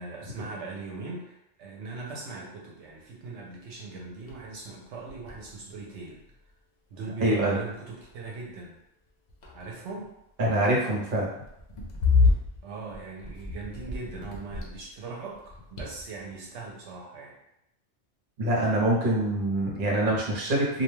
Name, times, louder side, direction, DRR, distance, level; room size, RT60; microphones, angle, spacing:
voice 1, 0.0-6.2 6.9-8.8 9.5-10.1 12.6-17.3, right 3 dB, 80° right, -2 dB, 0.9 m, -40 dB
sound 1, 3.7-3.8 4.3-4.5 4.8-6.5 7.3-7.7 8.0-8.3 9.1-10.0 11.4-15.0 15.3-16.3, left 4 dB, 60° left, 0.5 m, -29 dB
voice 2, 7.2-7.6 10.4-11.3 18.4-20.8, right 1 dB, 50° right, -3 dB, 0.9 m, -25 dB
2.3 x 2.1 x 3.0 m, 0.82 s
omnidirectional pair, 1.2 m